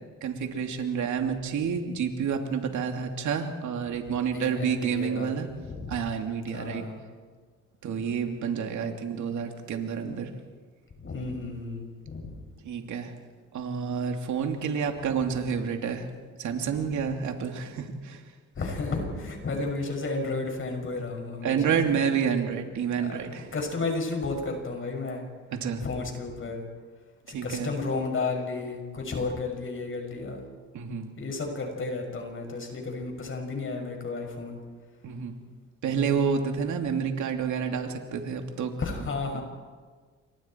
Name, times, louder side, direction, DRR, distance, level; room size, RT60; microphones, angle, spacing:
voice 1, 0.2-5.5 5.9-6.9 7.8-10.3 12.6-13.1 13.5-16.1 16.4-18.2 21.4-23.5 25.5-25.8 27.3-27.7 30.7-31.1 35.0-35.3 35.8-38.7 39.3-39.4, right 6 dB, 75° right, 4 dB, 2.8 m, -29 dB
voice 2, 4.3-5.3 5.6-5.9 6.5-7.0 11.0-12.3 18.5-21.8 23.0-23.2 23.5-25.2 25.8-26.6 27.3-30.4 31.2-34.6 38.8-39.4, left 3 dB, 45° left, 2 dB, 6.7 m, -32 dB
28.5 x 24.0 x 4.6 m, 1.5 s
cardioid pair, 90°, 30 cm